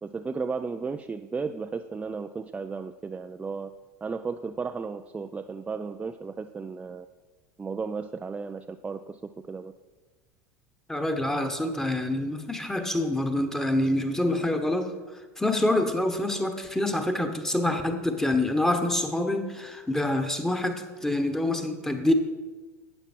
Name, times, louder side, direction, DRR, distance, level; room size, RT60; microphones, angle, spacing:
voice 1, 0.0-3.7 4.0-7.1 7.6-9.7, right 4 dB, 15° right, 8 dB, 0.4 m, -34 dB
voice 2, 10.9-14.9 15.4-22.1, left 1 dB, 5° left, 6 dB, 1.3 m, -26 dB
12.5 x 8.8 x 4.5 m, 1.3 s
hypercardioid pair, 80°, 8 cm